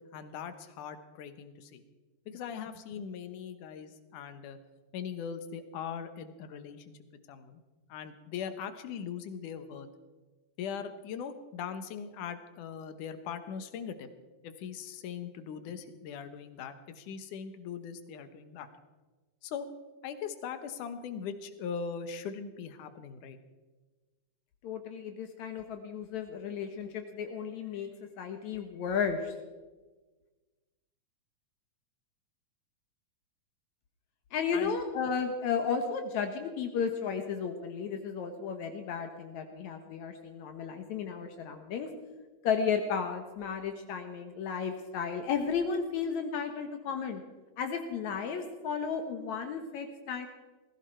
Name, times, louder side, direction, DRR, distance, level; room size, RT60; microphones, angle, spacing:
voice 1, 0.1-1.8 2.3-4.6 4.9-6.9 7.3-7.6 7.9-9.9 10.6-14.1 14.4-18.7 19.4-19.7 20.0-23.4 34.5-34.8, left 7 dB, 85° left, 10 dB, 2.7 m, -40 dB
voice 2, 24.6-27.9 28.2-29.3 34.3-41.9 42.4-47.2 47.6-50.3, left 6 dB, 70° left, 6 dB, 2.3 m, -33 dB
19.0 x 16.0 x 4.5 m, 1.3 s
omnidirectional pair, 3.5 m